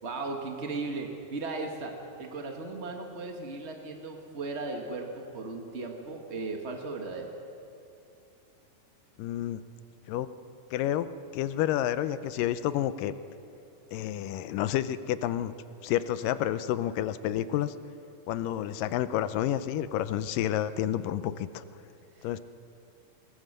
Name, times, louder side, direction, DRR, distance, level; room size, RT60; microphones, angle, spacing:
voice 1, 0.0-7.3 22.2-22.3, right 3 dB, 45° right, 2 dB, 0.8 m, -36 dB
voice 2, 9.2-9.6 10.1-10.3 10.7-11.1 11.3-13.1 13.9-15.5 15.8-17.7 18.3-21.6 22.2-22.4, left 11 dB, 80° left, 13 dB, 2.3 m, -29 dB
22.5 x 22.0 x 6.7 m, 2.6 s
omnidirectional pair, 3.9 m